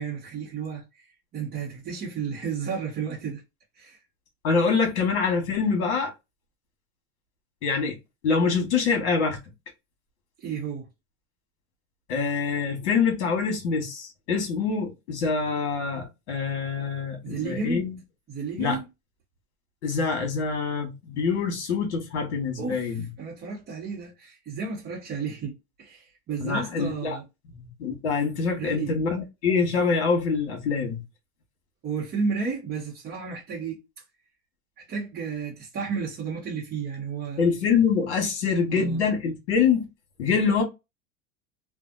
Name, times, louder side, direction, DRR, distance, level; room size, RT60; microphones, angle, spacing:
voice 1, 0.0-3.4 3.7-4.0 10.4-10.9 17.2-17.9 18.3-18.8 22.6-27.2 28.6-29.0 31.8-33.8 34.8-37.4 38.7-39.0, right 5 dB, 30° right, 1.0 m, -32 dB
voice 2, 4.4-6.1 7.6-8.0 8.2-9.4 12.1-18.0 18.6-18.8 19.8-23.1 26.4-27.2 27.5-31.0 37.4-39.8 40.2-40.6, left 5 dB, 85° left, 1.2 m, -25 dB
2.7 x 2.3 x 2.4 m
supercardioid pair, 130°, 34 cm